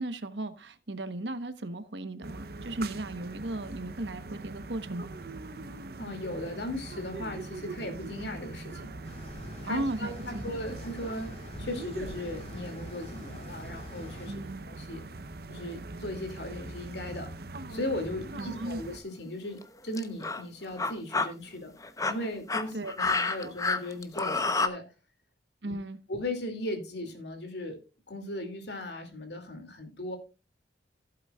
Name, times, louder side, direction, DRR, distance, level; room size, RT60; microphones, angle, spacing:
voice 1, 0.0-5.1 9.7-10.5 14.3-14.7 18.4-18.8 22.7-23.1 23.4-23.5 25.6-26.0, right 1 dB, 85° right, 1.1 m, -36 dB
sound 1, 2.2-19.0, right 2 dB, 60° right, 0.8 m, -42 dB
voice 2, 6.0-8.9 9.6-14.3 14.7-15.0 15.5-17.3 17.7-21.7 22.1-24.9 25.6-25.7 26.1-27.8 28.1-30.2, left 1 dB, 75° left, 2.6 m, -37 dB
sound 2, 9.0-14.4, left 1 dB, 35° left, 4.0 m, -46 dB
sound 3, 18.4-18.7 19.5-19.6 19.9-20.4 20.8-21.3 21.8-24.7, left 3 dB, 20° left, 0.9 m, -28 dB
15.5 x 8.2 x 2.4 m
head